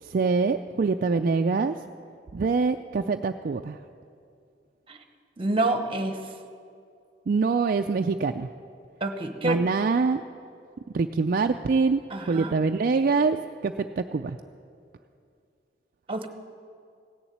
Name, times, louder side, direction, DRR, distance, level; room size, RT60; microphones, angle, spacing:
voice 1, 0.0-1.7 2.3-3.8 7.3-8.5 9.4-10.2 10.9-14.4, right 4 dB, 55° right, 6 dB, 0.4 m, -24 dB
voice 2, 5.4-6.2 9.0-9.6 12.1-12.6 16.1-16.3, right 2 dB, 30° right, 7 dB, 1.0 m, -27 dB
16.5 x 7.1 x 9.3 m, 2.4 s
head